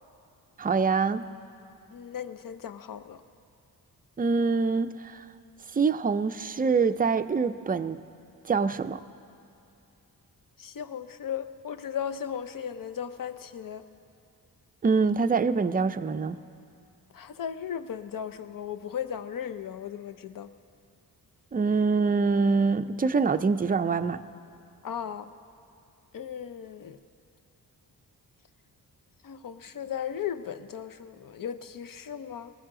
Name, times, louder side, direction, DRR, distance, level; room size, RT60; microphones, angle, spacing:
voice 1, 0.6-1.3 4.2-5.2 5.7-8.0 8.4-9.0 14.8-16.4 21.5-24.2, right 4 dB, 20° right, 11 dB, 0.5 m, -25 dB
voice 2, 1.9-3.2 10.6-13.8 17.1-20.5 24.8-25.3 26.1-27.0 29.2-32.5, left 8 dB, 50° left, 12 dB, 0.7 m, -36 dB
19.5 x 14.5 x 3.8 m, 2.6 s
cardioid pair, 55°, 41 cm